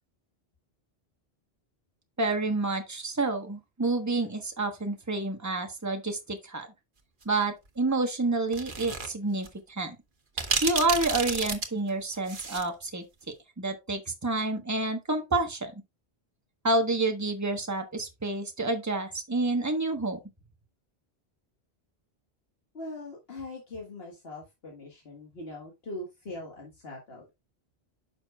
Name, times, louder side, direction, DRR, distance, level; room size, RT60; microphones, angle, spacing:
voice 1, 2.2-6.7 7.2-10.0 10.6-13.0 13.6-15.7 16.6-20.2, right 2 dB, 15° right, 1.2 m, -29 dB
sound 1, 8.5-9.1 9.4-9.5 10.4-12.7, right 4 dB, 55° right, 1.4 m, -31 dB
voice 2, 22.7-27.3, left 2 dB, 70° left, 1.9 m, -41 dB
9.7 x 6.4 x 2.3 m
omnidirectional pair, 1.1 m